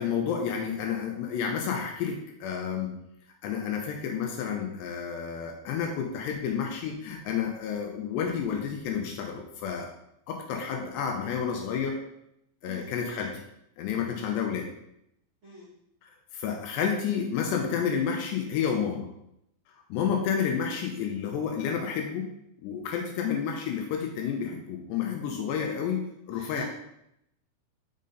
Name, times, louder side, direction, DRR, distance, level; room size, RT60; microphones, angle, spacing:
voice 1, 0.0-2.9 3.4-9.9 10.3-12.0 12.6-13.4 13.8-14.7 16.0-19.1 19.9-22.3 22.6-26.0 26.3-26.6, left 7 dB, 80° left, 2 dB, 2.6 m, -30 dB
voice 2, 12.6-12.9 15.4-15.7 26.3-26.6, equal, 85° right, -8 dB, 1.1 m, -45 dB
6.6 x 5.2 x 3.8 m, 0.78 s
omnidirectional pair, 5.4 m